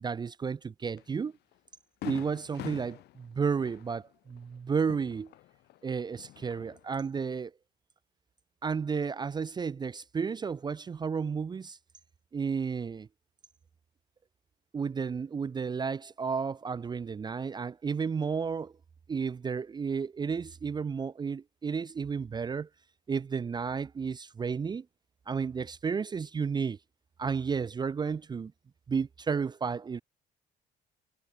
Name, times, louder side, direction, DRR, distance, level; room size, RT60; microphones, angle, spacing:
voice 1, 0.0-1.3 2.0-5.3 5.8-7.5 8.6-11.8 12.3-13.1 14.7-18.7 19.1-22.7 23.1-24.9 25.3-26.8 27.2-28.5 28.9-30.0, right 5 dB, 25° right, 0.5 m, -32 dB
Fireworks, 1.0-1.1 1.5-1.6 2.0-5.8 6.1-7.0, left 16 dB, 80° left, 6.0 m, -45 dB
cardioid pair, 110°, 17 cm